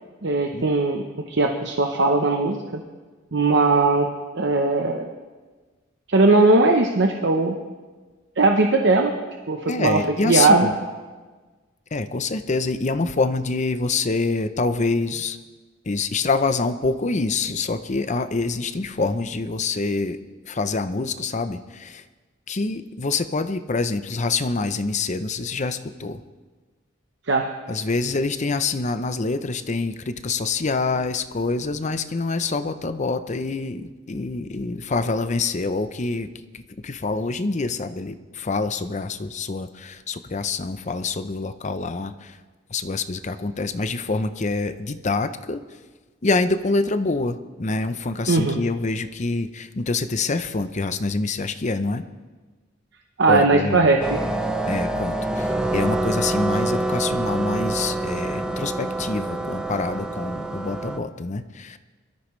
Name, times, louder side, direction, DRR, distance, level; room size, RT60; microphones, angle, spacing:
voice 1, 0.2-2.8 3.3-4.1 4.3-5.0 6.1-7.6 8.4-9.1 9.5-10.7 27.3-27.5 48.3-48.6 53.2-54.2, right 3 dB, 60° right, 3 dB, 0.9 m, -19 dB
voice 2, 9.7-10.7 11.9-15.4 15.9-20.2 20.4-22.0 22.5-26.2 27.7-36.3 36.5-42.4 42.7-45.6 46.2-52.0 53.3-54.0 54.7-61.8, left 3 dB, 35° left, 10 dB, 0.6 m, -26 dB
sound 1, 54.0-61.0, right 2 dB, 5° right, 0.8 m, -26 dB
22.5 x 13.5 x 3.2 m, 1.3 s
head